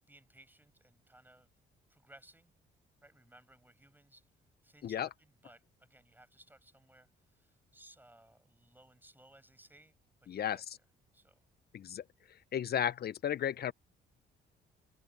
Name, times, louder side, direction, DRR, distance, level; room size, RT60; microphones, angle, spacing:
voice 1, 0.1-1.5 1.9-2.5 3.0-4.3 4.6-10.6 11.1-11.4, right 1 dB, 10° right, 7.7 m, -61 dB
voice 2, 10.3-10.6 11.7-12.0 12.5-13.7, left 10 dB, 55° left, 0.8 m, -34 dB
open air
cardioid pair, 90°, 20 cm